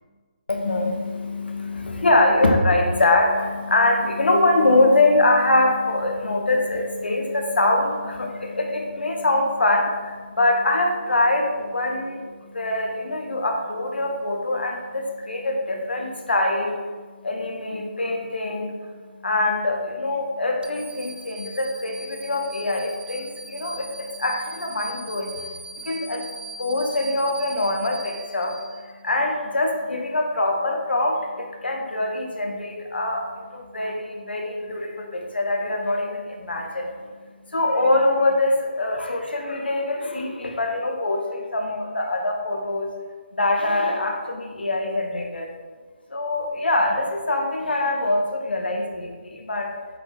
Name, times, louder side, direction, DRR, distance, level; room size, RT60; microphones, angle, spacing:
voice 1, 0.5-42.9 43.3-45.5 46.1-49.7, left 2 dB, 80° left, 1 dB, 1.6 m, -24 dB
sound 1, 20.6-29.1, right 2 dB, 70° right, 0.7 m, -40 dB
8.2 x 5.0 x 3.8 m, 1.5 s
figure-of-eight pair, 150°, 6 cm